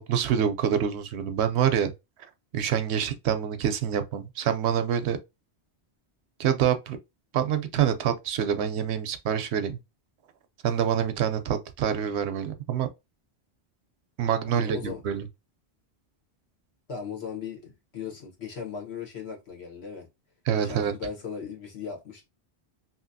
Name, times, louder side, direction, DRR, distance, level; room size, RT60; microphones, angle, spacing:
voice 1, 0.0-1.9 2.5-5.2 6.4-7.0 7.3-9.8 10.6-12.9 14.2-15.3 20.5-20.9, right 9 dB, 75° right, 0.8 m, -26 dB
voice 2, 14.5-15.2 16.9-20.1 20.5-22.2, left 6 dB, 70° left, 1.4 m, -37 dB
2.8 x 2.8 x 2.5 m
omnidirectional pair, 1.1 m